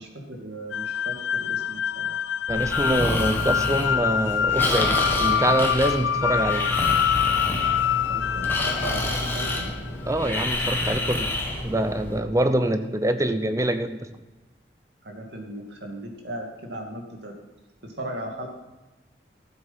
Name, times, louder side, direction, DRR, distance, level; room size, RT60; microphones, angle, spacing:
voice 1, 0.0-2.1 3.3-3.7 8.1-9.7 12.5-12.8 15.0-17.3 17.8-18.5, right 1 dB, 65° right, 1 dB, 2.4 m, -37 dB
sound 1, 0.7-9.9, left 8 dB, 85° left, 0.4 m, -25 dB
Breathing, 2.5-12.2, left 1 dB, 10° left, 1.7 m, -28 dB
voice 2, 2.5-6.7 10.1-11.3 11.6-14.0, right 1 dB, 15° right, 9 dB, 0.7 m, -25 dB
14.0 x 7.9 x 5.8 m, 1.1 s
head